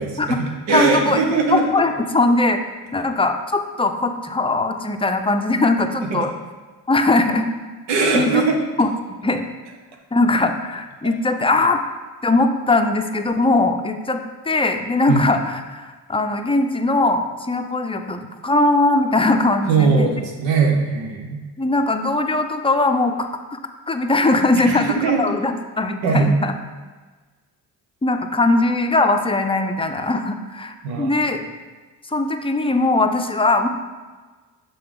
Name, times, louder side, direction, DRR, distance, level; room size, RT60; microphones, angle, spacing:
voice 1, 0.0-1.6 6.0-6.3 7.9-8.6 15.1-15.2 19.7-21.4 24.5-25.2 25.9-26.3 30.8-31.2, right 4 dB, 80° right, 3 dB, 1.0 m, -20 dB
voice 2, 0.7-1.2 1.5-2.6 2.9-6.3 6.9-7.5 8.1-8.4 8.8-9.5 10.1-11.8 12.2-20.1 21.6-23.6 23.9-26.6 28.0-31.4 32.0-33.7, left 2 dB, 15° left, 6 dB, 0.5 m, -20 dB
6.6 x 3.9 x 3.7 m, 1.3 s
supercardioid pair, 60°, 44 cm